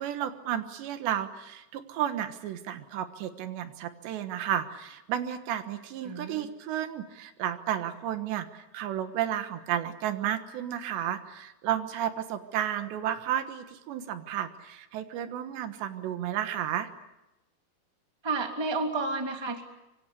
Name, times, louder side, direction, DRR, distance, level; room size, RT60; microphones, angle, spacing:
voice 1, 0.0-16.9, right 10 dB, 80° right, 10 dB, 3.6 m, -32 dB
voice 2, 6.0-6.5 18.2-19.6, right 3 dB, 10° right, 4 dB, 1.9 m, -31 dB
26.0 x 25.0 x 8.3 m, 0.96 s
omnidirectional pair, 5.0 m